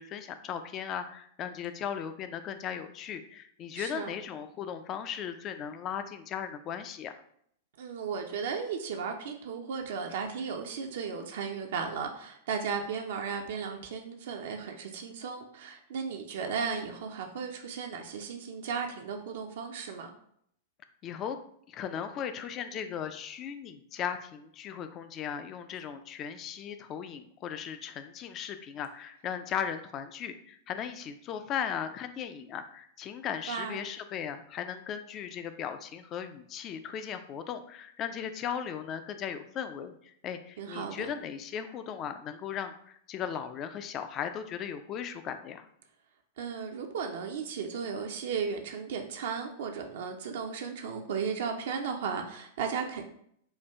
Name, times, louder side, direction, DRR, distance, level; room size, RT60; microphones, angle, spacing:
voice 1, 0.0-7.2 21.0-21.4 21.7-45.7, left 8 dB, 30° left, 9 dB, 0.4 m, -37 dB
voice 2, 3.7-4.1 7.8-20.1 33.5-33.8 40.6-41.1 46.4-53.0, right 6 dB, 55° right, 3 dB, 0.4 m, -35 dB
4.4 x 2.3 x 3.4 m, 0.68 s
figure-of-eight pair, 95°, 0 cm